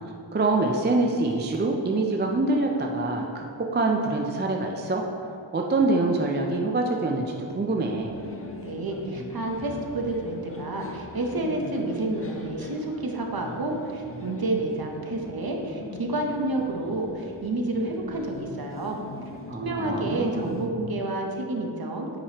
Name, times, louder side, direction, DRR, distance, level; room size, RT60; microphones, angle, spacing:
voice 1, 0.3-5.0 5.5-8.2 19.5-20.7, right 2 dB, 25° right, 1 dB, 0.4 m, -25 dB
sound 1, 8.0-20.7, left 2 dB, 30° left, 0.5 m, -41 dB
voice 2, 8.6-19.0 19.6-22.1, right 2 dB, 50° right, 2 dB, 0.8 m, -29 dB
8.5 x 4.8 x 2.9 m, 2.7 s
wide cardioid pair, 95°, 47 cm